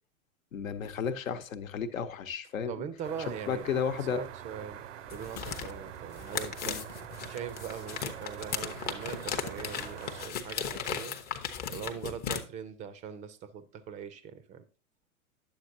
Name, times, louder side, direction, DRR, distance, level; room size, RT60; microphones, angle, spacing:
voice 1, 0.5-2.8 3.3-4.2 6.6-6.8, left 7 dB, 65° left, 8 dB, 1.0 m, -33 dB
voice 2, 2.7-3.7 4.1-4.8 5.1-6.8 7.3-11.2 11.7-14.7, right 8 dB, 15° right, 13 dB, 0.5 m, -41 dB
sound 1, 3.0-10.3, right 10 dB, 55° right, 0.6 m, -44 dB
sound 2, 5.1-12.4, left 7 dB, 20° left, 0.7 m, -37 dB
10.0 x 7.3 x 2.6 m, 0.34 s
figure-of-eight pair, 105°, 43 cm